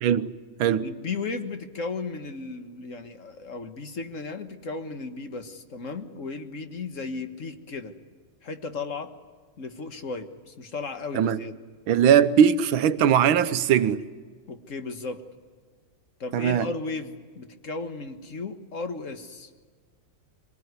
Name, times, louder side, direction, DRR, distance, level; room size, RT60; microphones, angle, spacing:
voice 1, 0.8-7.9 8.4-9.1 9.6-11.5 14.5-15.2 16.2-19.5, left 3 dB, 40° left, 1.7 m, -35 dB
voice 2, 11.9-14.0 16.3-16.7, right 8 dB, 80° right, 1.7 m, -20 dB
25.0 x 19.0 x 9.5 m
omnidirectional pair, 2.1 m